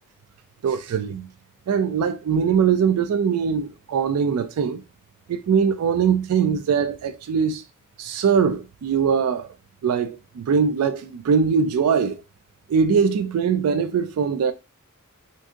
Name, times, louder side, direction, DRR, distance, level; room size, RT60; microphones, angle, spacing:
voice 1, 0.6-1.3 1.7-4.8 5.3-7.6 8.0-9.5 9.8-12.2 12.7-14.5, right 6 dB, 80° right, 0.3 m, -21 dB
2.6 x 2.5 x 3.6 m
head